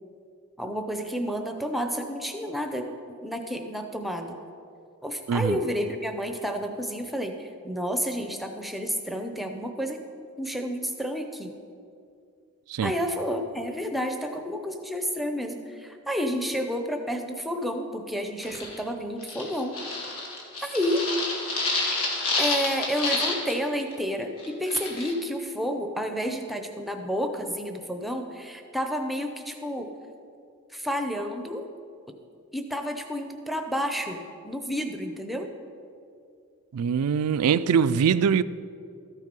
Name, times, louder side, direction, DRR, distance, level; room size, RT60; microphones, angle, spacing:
voice 1, 0.6-4.4 5.0-10.0 10.4-11.5 12.8-19.8 20.6-21.0 22.4-29.9 30.7-31.6 32.5-35.5, equal, ahead, 5 dB, 0.7 m, -30 dB
voice 2, 5.3-5.6 12.7-12.9 36.7-38.4, right 7 dB, 90° right, 15 dB, 0.4 m, -23 dB
sound 1, 18.4-18.8 19.2-23.5 23.8-23.9 24.4-25.1, left 3 dB, 90° left, 2.6 m, -29 dB
13.5 x 8.2 x 5.3 m, 2.5 s
head